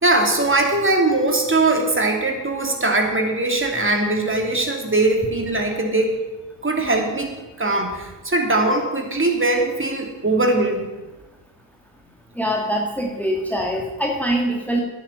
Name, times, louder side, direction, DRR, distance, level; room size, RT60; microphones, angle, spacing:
voice 1, 0.0-6.2 6.6-7.3 7.6-10.9, right 2 dB, 25° right, 2 dB, 3.0 m, -20 dB
voice 2, 12.4-14.8, equal, 5° left, 1 dB, 1.9 m, -23 dB
10.5 x 7.2 x 9.4 m, 1.1 s
supercardioid pair, 50°, 48 cm